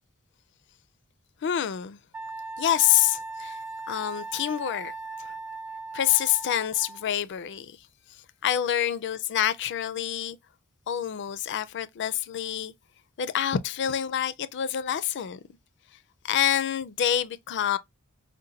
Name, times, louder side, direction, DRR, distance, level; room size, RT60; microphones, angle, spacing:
voice 1, 1.4-2.0 2.6-3.6 3.9-4.9 5.2-5.3 5.9-7.8 8.4-10.4 10.9-12.7 13.2-15.4 16.2-17.8, left 10 dB, 55° left, 0.4 m, -27 dB
Wind instrument woodwind instrument, 2.1-7.1, right 3 dB, 5° right, 0.5 m, -38 dB
5.0 x 2.1 x 2.7 m
head